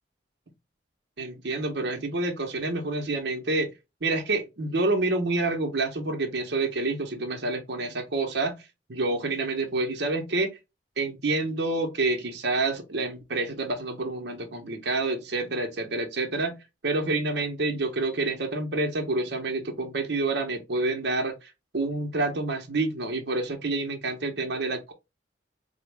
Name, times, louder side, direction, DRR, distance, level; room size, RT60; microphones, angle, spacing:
voice 1, 1.2-3.7 4.0-8.6 8.9-10.5 11.0-16.6 16.8-24.9, right 2 dB, 70° right, 0.7 m, -28 dB
4.0 x 2.0 x 3.3 m
head